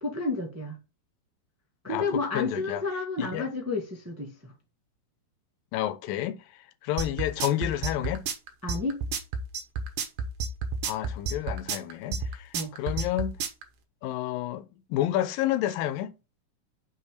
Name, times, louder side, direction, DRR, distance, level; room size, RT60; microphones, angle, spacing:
voice 1, 0.0-0.8 1.8-4.5 8.6-9.0 12.5-12.7, left 3 dB, 10° right, 0.9 m, -31 dB
voice 2, 1.9-2.8 3.2-3.5 5.7-6.4 6.8-8.2 10.8-13.4 14.0-16.1, left 13 dB, 90° left, 2.5 m, -30 dB
sound 1, 7.0-13.6, right 5 dB, 80° right, 2.9 m, -30 dB
6.0 x 5.5 x 6.6 m
omnidirectional pair, 3.9 m